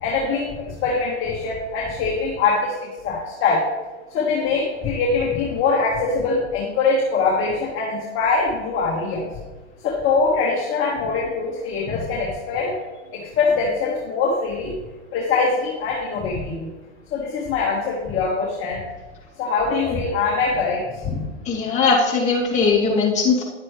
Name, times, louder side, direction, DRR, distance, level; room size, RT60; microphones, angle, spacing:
voice 1, 0.0-2.7 3.0-3.6 4.1-9.2 9.8-12.7 13.1-14.7 15.1-16.7 17.1-18.8 19.4-20.8 21.1-21.2, left 4 dB, 35° left, -4 dB, 1.9 m, -23 dB
voice 2, 21.4-23.4, left 4 dB, 20° left, -5 dB, 2.9 m, -19 dB
10.5 x 8.2 x 3.4 m, 1.2 s
hypercardioid pair, 110°, 36 cm